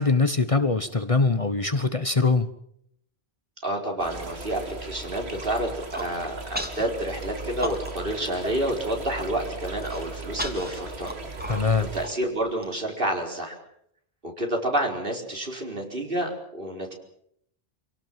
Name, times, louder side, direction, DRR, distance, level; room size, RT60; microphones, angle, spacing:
voice 1, 0.0-2.5 11.5-11.9, left 3 dB, 35° left, 11 dB, 1.1 m, -22 dB
voice 2, 3.6-11.2 11.9-13.6 14.2-16.9, right 1 dB, 60° right, 2 dB, 4.8 m, -29 dB
sound 1, 4.0-12.1, right 3 dB, 90° right, 2.3 m, -38 dB
Human voice, 5.7-6.1 6.6-6.9 7.2-8.1 8.4-8.5 8.9-9.3 9.8-12.7, equal, 10° right, 2.9 m, -35 dB
26.5 x 17.5 x 7.6 m, 0.71 s
omnidirectional pair, 1.1 m